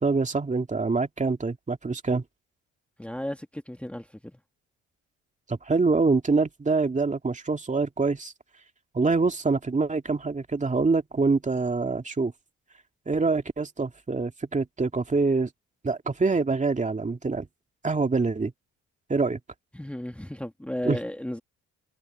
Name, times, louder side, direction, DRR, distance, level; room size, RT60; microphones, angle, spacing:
voice 1, 0.0-2.2 5.5-8.3 8.9-12.3 13.1-15.5 15.8-17.5 17.8-18.5 19.1-19.4 20.8-21.0, right 4 dB, 25° right, 2.5 m, -25 dB
voice 2, 3.0-4.4 19.7-21.4, left 1 dB, 5° left, 1.8 m, -34 dB
cardioid pair, 90°, 30 cm